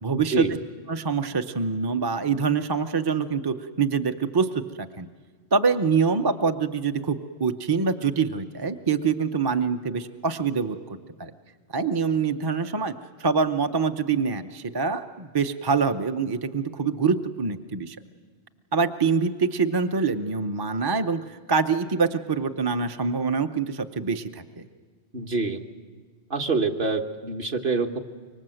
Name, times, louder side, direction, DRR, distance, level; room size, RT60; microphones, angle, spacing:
voice 1, 0.0-0.6 0.9-5.1 5.5-11.3 11.7-12.9 13.2-18.0 18.7-24.6, right 5 dB, 25° right, 7 dB, 0.6 m, -25 dB
voice 2, 25.1-25.6 26.3-28.0, right 3 dB, 45° right, 3 dB, 1.5 m, -26 dB
25.0 x 24.0 x 7.8 m, 1.5 s
omnidirectional pair, 1.3 m